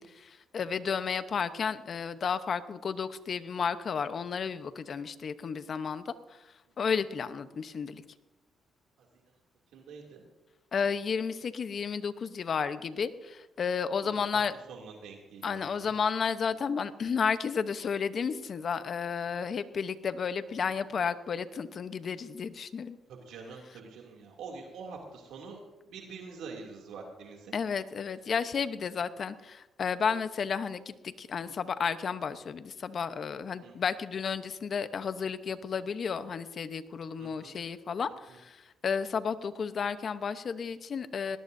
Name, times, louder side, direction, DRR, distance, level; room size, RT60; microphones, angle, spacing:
voice 1, 0.0-6.4 6.8-8.0 10.7-14.5 15.4-23.0 27.5-41.4, left 6 dB, 50° left, 12 dB, 0.9 m, -32 dB
voice 2, 9.7-10.2 14.0-14.2 14.7-15.9 23.1-25.6 25.9-27.5 33.6-33.7 37.2-37.5 38.3-38.4, right 4 dB, 85° right, 0 dB, 2.7 m, -45 dB
19.5 x 18.5 x 2.7 m, 1.1 s
cardioid pair, 90°, 0 cm